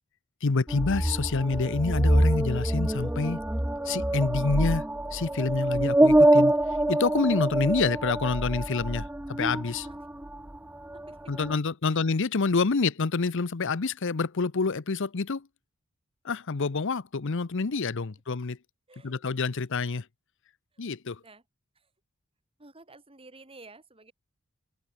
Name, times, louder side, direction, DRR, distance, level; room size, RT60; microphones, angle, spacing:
voice 1, 0.4-3.4 3.8-4.9 5.1-6.5 6.9-9.9 11.3-15.5 16.2-18.6 19.0-20.1 20.8-21.2, left 4 dB, 60° left, 0.8 m, -27 dB
sound 1, 0.7-10.6 10.9-11.6, right 1 dB, 10° right, 0.6 m, -25 dB
voice 2, 10.9-11.3 11.9-12.0 18.3-18.4 18.9-19.2 21.2-21.4 21.7-21.9 22.6-24.1, right 2 dB, 25° right, 5.2 m, -52 dB
open air
head